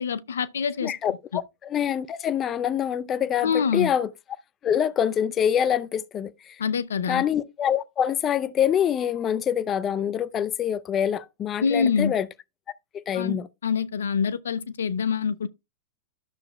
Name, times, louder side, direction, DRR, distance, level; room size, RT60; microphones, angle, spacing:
voice 1, 0.0-0.9 3.4-3.9 6.6-7.2 11.6-12.1 13.1-15.5, left 6 dB, 80° left, 0.4 m, -25 dB
voice 2, 0.8-4.1 4.6-6.6 7.1-12.3 13.1-13.5, left 9 dB, 30° left, 0.5 m, -25 dB
11.5 x 6.7 x 2.2 m
hypercardioid pair, 105°, 0 cm